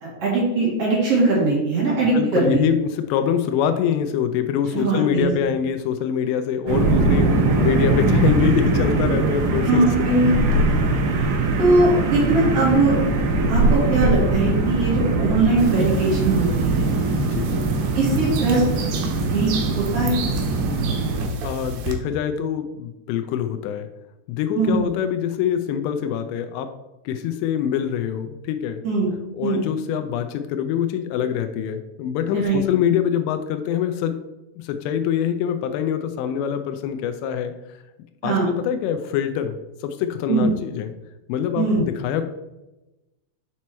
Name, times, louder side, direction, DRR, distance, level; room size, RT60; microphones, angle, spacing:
voice 1, 0.0-2.6 4.7-5.3 9.7-10.3 11.6-12.9 13.5-16.9 17.9-18.6 19.1-19.5 19.7-20.2 24.6-24.8 28.8-29.1 29.4-29.6 32.3-32.6 38.2-38.5 40.3-40.5 41.6-41.8, right 2 dB, 50° right, -5 dB, 2.1 m, -20 dB
voice 2, 2.1-9.8 17.2-17.5 21.4-23.9 24.3-26.7 27.1-28.8 29.3-34.1 34.6-37.5 38.2-39.6 39.8-40.9 41.3-42.2, left 9 dB, 85° left, 8 dB, 2.8 m, -24 dB
sound 1, 6.7-21.3, right 3 dB, 70° right, 2.8 m, -21 dB
sound 2, 15.6-21.9, right 6 dB, 85° right, 3.1 m, -33 dB
7.1 x 4.6 x 4.3 m, 1.0 s
omnidirectional pair, 4.9 m